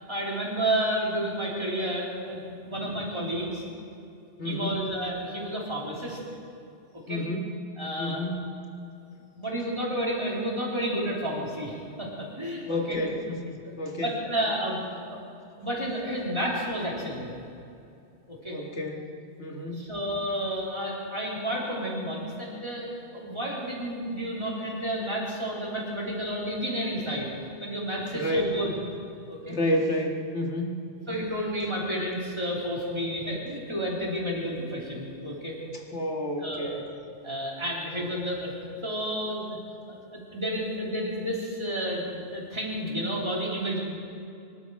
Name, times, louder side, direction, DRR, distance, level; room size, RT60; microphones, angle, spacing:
voice 1, 0.1-3.6 4.4-6.2 6.9-7.2 7.8-8.2 9.4-13.0 14.0-14.8 15.1-15.2 15.6-17.3 18.3-18.6 19.6-22.9 23.1-27.3 27.6-28.7 29.3-29.6 31.1-35.6 36.4-36.8 37.2-38.5 38.8-39.6 39.9-43.8, equal, 25° right, -4 dB, 3.5 m, -31 dB
voice 2, 4.4-4.9 7.1-7.5 8.0-8.5 12.6-14.1 18.5-19.1 19.4-19.9 28.1-28.5 29.5-30.9 35.9-36.9 37.2-37.4 37.8-38.1, left 1 dB, 70° left, 1 dB, 2.1 m, -30 dB
24.5 x 12.0 x 4.7 m, 2.6 s
omnidirectional pair, 1.2 m